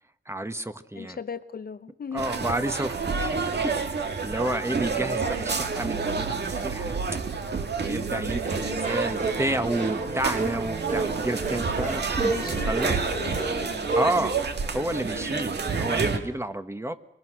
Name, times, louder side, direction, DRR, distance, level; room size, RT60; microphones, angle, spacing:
voice 1, 0.2-1.2 2.1-7.0 7.8-13.2 14.0-14.4 14.7-17.0, right 1 dB, 15° right, 10 dB, 1.4 m, -31 dB
voice 2, 0.9-2.3 4.5-4.6 5.3-5.6 7.9-8.2 12.2-12.7 13.1-13.8 15.1-15.5, left 6 dB, 50° left, 12 dB, 0.9 m, -38 dB
sound 1, 2.2-16.2, right 4 dB, 55° right, 2.2 m, -29 dB
sound 2, 8.4-14.4, right 3 dB, 40° right, 3.6 m, -31 dB
25.5 x 23.5 x 6.3 m, 0.80 s
wide cardioid pair, 105°, 20 cm